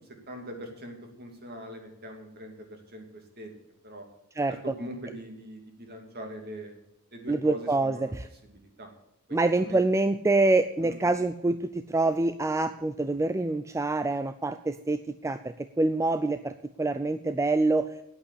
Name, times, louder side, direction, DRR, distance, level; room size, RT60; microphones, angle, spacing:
voice 1, 0.3-3.5 3.8-4.1 4.5-6.8 7.1-8.1 8.4-8.9 9.3-9.8 10.8-11.0, equal, 45° right, 4 dB, 2.6 m, -42 dB
voice 2, 7.3-8.3 9.3-18.0, right 2 dB, 15° right, 11 dB, 0.4 m, -26 dB
9.9 x 8.6 x 8.2 m, 0.85 s
head